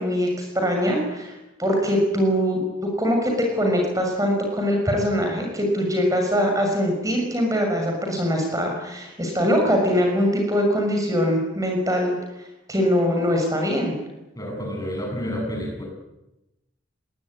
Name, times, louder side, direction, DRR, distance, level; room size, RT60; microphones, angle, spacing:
voice 1, 0.0-14.0, equal, 15° right, 2 dB, 6.3 m, -22 dB
voice 2, 14.4-15.8, equal, 15° left, 1 dB, 7.7 m, -29 dB
25.0 x 20.5 x 9.9 m, 0.96 s
head